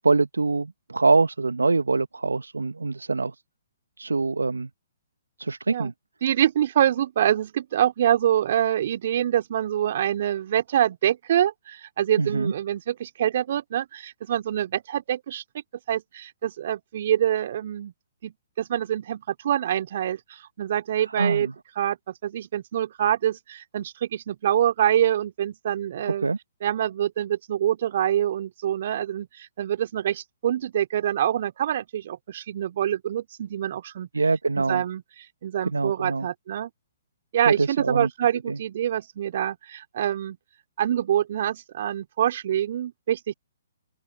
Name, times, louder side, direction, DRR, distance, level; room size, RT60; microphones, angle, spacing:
voice 1, 0.0-3.3 4.0-4.7 5.4-5.9 12.2-12.5 21.1-21.5 26.0-26.4 34.1-34.8 35.7-36.3 37.5-38.1 38.5-38.6, right 3 dB, 85° right, 1.2 m, -24 dB
voice 2, 6.2-15.4 15.9-17.9 18.2-21.5 21.8-26.3 26.6-34.1 34.6-35.0 35.4-36.7 37.3-40.4 40.8-43.3, right 11 dB, 50° right, 3.4 m, -25 dB
open air
figure-of-eight pair, 130°, 0 cm